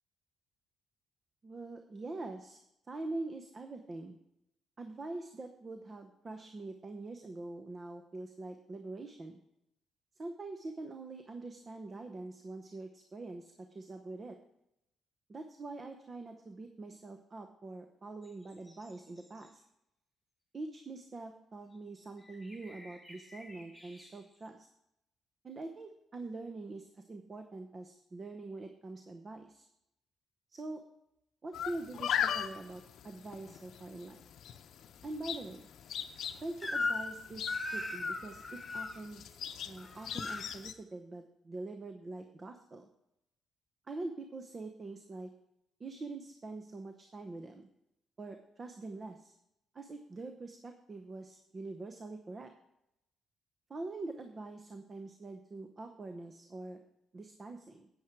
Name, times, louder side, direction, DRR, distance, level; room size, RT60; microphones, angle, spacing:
voice 1, 1.4-2.6 2.9-4.2 4.8-9.4 10.2-14.4 15.3-19.6 20.5-24.7 25.4-29.7 30.5-30.8 31.4-34.2 35.0-35.7 36.4-39.4 39.6-42.9 43.9-45.3 45.8-47.7 48.2-49.3 49.7-52.5 53.7-56.8 57.1-57.9, right 2 dB, 35° right, 6 dB, 0.8 m, -44 dB
sound 1, 18.2-19.5 21.7-24.5, left 1 dB, 5° right, 3.8 m, -56 dB
sound 2, 31.5-40.7, left 9 dB, 70° left, 0.7 m, -40 dB
Crying sobbing / Screech, 36.6-37.2 37.5-39.0 39.8-40.5, left 3 dB, 20° left, 1.4 m, -36 dB
9.4 x 8.9 x 4.6 m, 0.82 s
cardioid pair, 90°, 0 cm